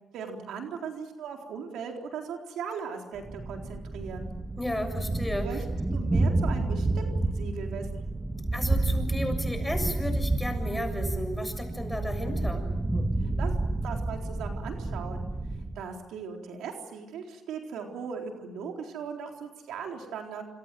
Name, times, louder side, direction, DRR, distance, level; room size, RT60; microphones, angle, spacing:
voice 1, 0.1-4.3 5.4-5.6 5.9-8.0 13.2-13.5 13.8-15.3 15.8-20.4, right 6 dB, 80° right, 2 dB, 4.0 m, -38 dB
Thunder, 3.2-15.9, right 2 dB, 20° right, 1.9 m, -30 dB
voice 2, 4.6-5.6 8.5-12.6, left 1 dB, 5° left, 7 dB, 7.1 m, -33 dB
27.5 x 27.0 x 7.8 m, 1.1 s
cardioid pair, 90°, 0 cm